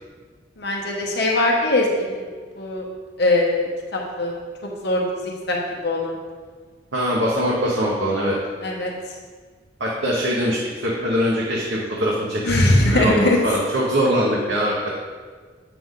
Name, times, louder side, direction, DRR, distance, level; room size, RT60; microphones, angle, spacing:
voice 1, 0.6-2.2 2.6-2.8 3.2-4.4 4.8-5.6 5.8-6.2 8.6-8.9 12.4-13.4, left 2 dB, 60° left, -2 dB, 1.1 m, -21 dB
voice 2, 6.9-8.3 9.8-14.9, equal, 65° right, -5 dB, 1.2 m, -22 dB
8.6 x 5.9 x 3.8 m, 1.5 s
head